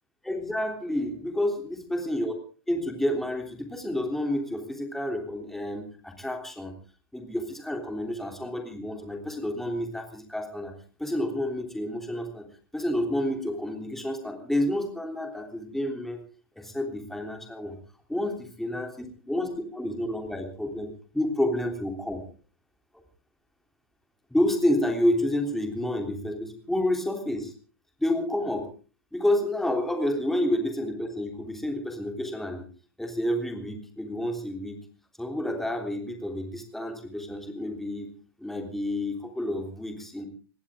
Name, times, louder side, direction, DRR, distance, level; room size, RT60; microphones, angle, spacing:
voice 1, 0.2-2.3 2.7-6.7 7.1-10.7 11.0-12.5 12.7-16.2 16.6-17.7 18.1-22.2 24.3-27.5 28.0-28.7 29.1-32.7 33.0-34.8 35.2-38.1 38.4-40.2, left 1 dB, ahead, 4 dB, 3.3 m, -29 dB
20.0 x 17.5 x 3.7 m, 0.39 s
hypercardioid pair, 125°, 12 cm